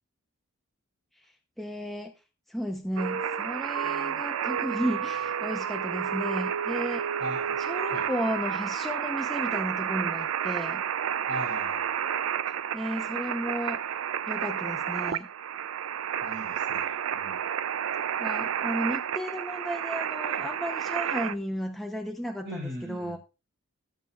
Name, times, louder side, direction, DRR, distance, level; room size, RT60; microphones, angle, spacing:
voice 1, 1.6-2.1 2.5-7.0 7.6-10.8 12.7-13.8 14.3-15.3 18.2-23.2, equal, ahead, 2 dB, 0.7 m, -33 dB
sound 1, 3.0-21.3, right 8 dB, 70° right, 0.4 m, -31 dB
voice 2, 7.2-7.6 7.9-8.1 11.3-11.9 16.2-17.4 22.4-23.2, right 1 dB, 55° right, -7 dB, 4.6 m, -38 dB
18.0 x 7.0 x 2.4 m, 0.31 s
head